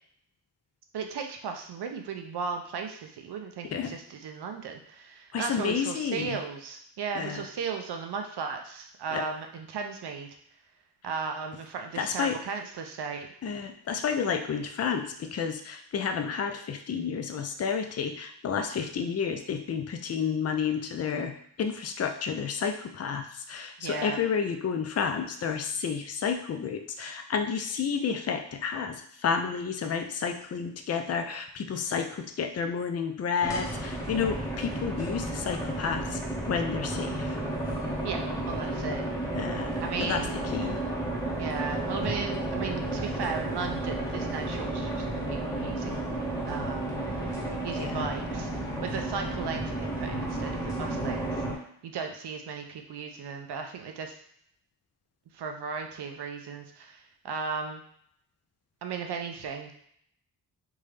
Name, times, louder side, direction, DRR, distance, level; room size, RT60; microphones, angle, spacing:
voice 1, 0.9-10.3 11.0-13.3 23.8-24.2 38.0-39.1 39.8-40.4 41.4-46.0 46.5-51.4 51.8-54.1 55.3-57.8 58.8-59.7, right 5 dB, 65° right, 4 dB, 0.7 m, -36 dB
voice 2, 5.3-6.4 7.1-7.5 9.1-9.2 12.0-12.4 13.4-36.2 36.5-37.4 39.4-40.3 40.5-40.8 47.8-48.1, left 6 dB, 35° left, 6 dB, 0.5 m, -31 dB
sound 1, 33.4-51.6, right 1 dB, 10° left, 1.2 m, -32 dB
3.6 x 2.7 x 3.3 m, 0.68 s
cardioid pair, 70°, 43 cm